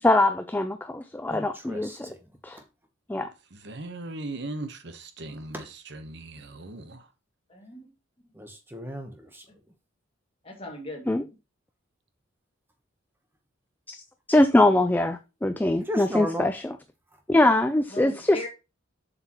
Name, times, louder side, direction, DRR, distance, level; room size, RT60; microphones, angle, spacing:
voice 1, 0.0-2.1 2.4-2.6 3.1-3.3 11.1-11.2 13.9-14.0 14.3-16.8 17.3-18.5, left 1 dB, 10° left, 0.3 m, -22 dB
voice 2, 1.3-2.2 5.5-5.6 8.4-9.4 15.9-16.5, equal, 10° right, 0.9 m, -35 dB
voice 3, 3.5-7.1, right 2 dB, 55° right, 1.0 m, -38 dB
voice 4, 7.5-7.9 10.4-11.1 17.9-18.5, left 1 dB, 30° left, 2.1 m, -38 dB
7.5 x 6.5 x 2.9 m
head